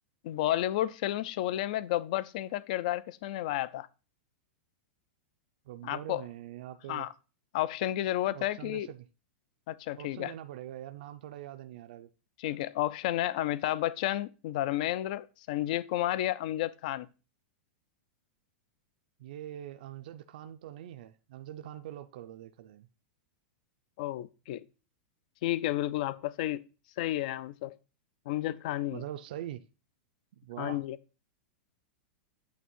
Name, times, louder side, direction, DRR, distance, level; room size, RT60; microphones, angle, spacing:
voice 1, 0.2-3.9 5.8-6.2 6.9-7.1 7.5-8.9 9.7-10.3 12.4-17.1 24.0-24.6 25.4-26.6 27.0-27.7 28.3-29.0 30.6-31.0, left 14 dB, 40° left, 0.3 m, -31 dB
voice 2, 5.6-7.1 8.3-9.1 10.0-12.1 19.2-22.9 28.9-29.6 30.3-30.8, right 12 dB, 50° right, 0.4 m, -43 dB
8.6 x 3.3 x 5.3 m
supercardioid pair, 175°, 6 cm